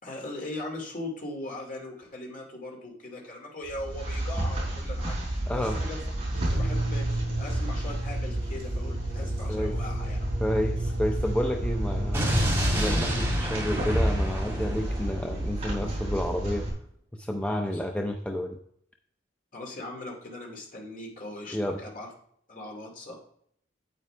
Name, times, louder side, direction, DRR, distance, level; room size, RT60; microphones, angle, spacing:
voice 1, 0.0-6.0 6.3-10.2 11.1-11.3 17.7-17.8 19.5-22.1 22.5-23.2, left 2 dB, 45° left, 0 dB, 2.4 m, -39 dB
sound 1, 3.6-16.7, right 1 dB, 30° right, 4.4 m, -31 dB
voice 2, 5.5-5.8 9.5-9.8 10.4-12.3 12.7-16.7 17.2-18.6 21.5-21.8, left 1 dB, 5° left, 2 dB, 0.5 m, -30 dB
sound 2, 6.3-12.6, right 1 dB, 50° right, 2.4 m, -32 dB
Explosion, 12.1-16.2, equal, 15° right, 2.5 m, -29 dB
9.4 x 8.6 x 3.3 m, 0.66 s
head